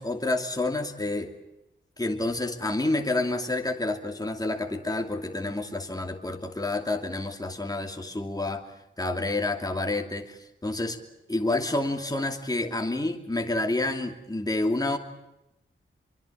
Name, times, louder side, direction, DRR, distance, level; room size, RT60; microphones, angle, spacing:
voice 1, 0.0-1.3 2.0-8.6 9.0-11.0 11.3-15.0, left 2 dB, 20° left, 3 dB, 2.7 m, -29 dB
25.5 x 23.5 x 7.4 m, 0.88 s
wide cardioid pair, 70°, 21 cm